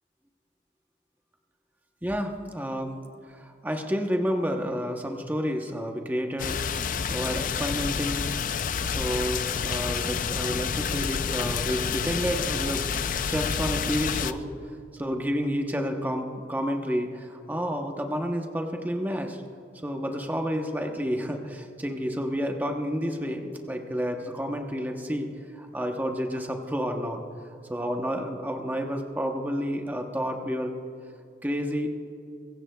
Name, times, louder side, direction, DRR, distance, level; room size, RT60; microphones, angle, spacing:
voice 1, 2.0-6.6 7.1-8.3 8.9-12.9 13.3-14.4 14.9-19.4 19.7-25.3 25.5-27.2 27.7-30.7 31.4-31.9, equal, 10° right, 3 dB, 0.8 m, -30 dB
sound 1, 6.4-14.3, left 6 dB, 45° left, 0.4 m, -29 dB
24.0 x 15.0 x 2.3 m, 2.5 s
head